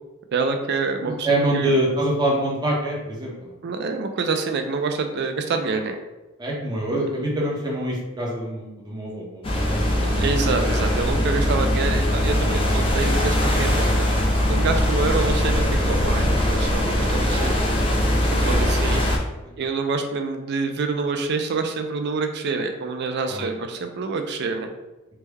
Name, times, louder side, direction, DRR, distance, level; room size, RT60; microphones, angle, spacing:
voice 1, 0.3-1.7 3.6-6.0 10.2-14.1 14.5-17.6 18.4-19.0 19.6-24.7, right 4 dB, 50° right, 6 dB, 0.4 m, -26 dB
voice 2, 1.1-3.5 6.4-9.9 18.3-18.6 23.3-23.6, right 1 dB, 20° right, -4 dB, 0.7 m, -25 dB
sound 1, 9.4-19.2, left 1 dB, 25° left, 0.4 m, -21 dB
3.4 x 2.1 x 3.3 m, 1.1 s
head